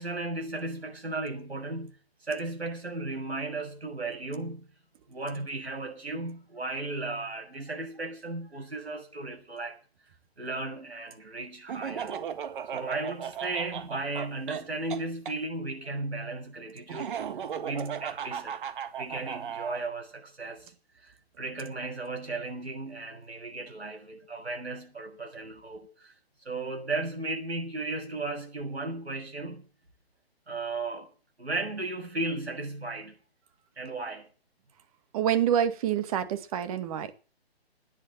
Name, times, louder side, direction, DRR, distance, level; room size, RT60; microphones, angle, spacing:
voice 1, 0.0-1.9 2.2-4.7 5.1-9.8 10.4-12.2 12.7-17.2 17.6-18.6 19.0-20.7 21.0-26.1 26.4-29.6 30.5-31.1 31.4-33.2 33.8-34.3, right 2 dB, 90° right, 7.2 m, -35 dB
Laughter, 11.7-15.4 16.9-19.8, right 8 dB, 55° right, 1.7 m, -36 dB
voice 2, 35.1-37.2, right 9 dB, 35° right, 2.0 m, -27 dB
15.5 x 10.0 x 7.5 m
hypercardioid pair, 145°, 31 cm